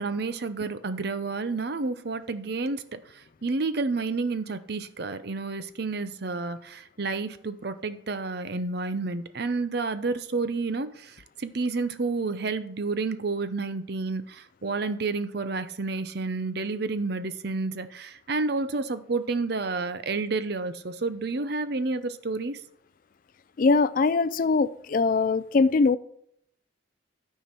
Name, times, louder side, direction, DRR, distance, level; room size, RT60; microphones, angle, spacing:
voice 1, 0.0-22.6, right 3 dB, 55° right, 0.6 m, -30 dB
voice 2, 23.6-26.0, left 4 dB, 45° left, 0.3 m, -22 dB
12.5 x 4.6 x 6.0 m
head